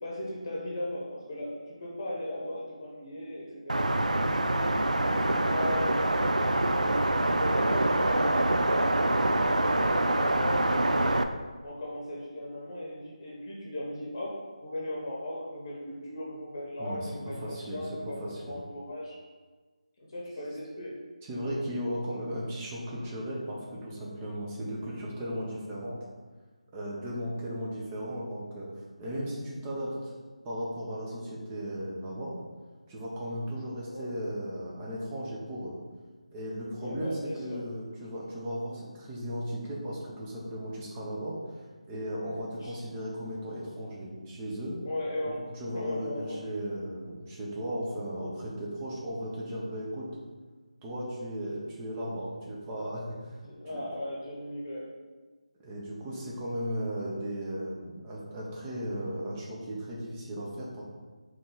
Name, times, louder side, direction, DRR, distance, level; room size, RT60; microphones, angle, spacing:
voice 1, 0.0-4.7 5.1-9.0 9.3-11.3 11.6-17.4 17.7-19.2 20.0-21.0 33.9-34.1 36.8-37.6 42.3-42.8 44.8-45.5 45.7-46.4 53.4-54.9, left 1 dB, 35° left, -4 dB, 1.0 m, -37 dB
sound 1, 3.7-11.2, right 1 dB, 90° right, 0.3 m, -25 dB
voice 2, 16.8-18.6 21.3-26.0 26.7-30.1 30.4-32.4 32.9-35.7 36.3-41.4 41.9-44.8 45.2-50.1 50.8-53.4 53.6-53.8 55.6-60.8, equal, 15° right, -5 dB, 0.7 m, -36 dB
3.8 x 3.2 x 3.8 m, 1.4 s
figure-of-eight pair, 160°, 4 cm